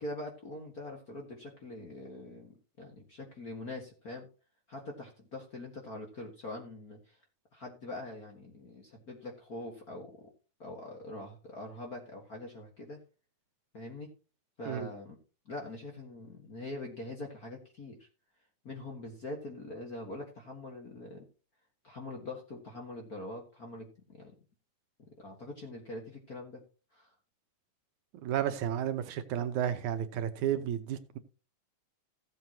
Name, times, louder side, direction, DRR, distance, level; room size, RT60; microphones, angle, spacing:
voice 1, 0.0-4.3 4.7-7.2 7.5-10.3 10.6-13.0 13.7-14.1 14.6-15.2 15.5-18.1 18.6-21.3 21.8-24.3 25.0-26.6 26.9-27.1, left 2 dB, 40° left, 1 dB, 1.6 m, -43 dB
voice 2, 28.2-31.2, right 10 dB, 75° right, 9 dB, 2.3 m, -32 dB
16.0 x 7.9 x 2.8 m, 0.34 s
omnidirectional pair, 3.6 m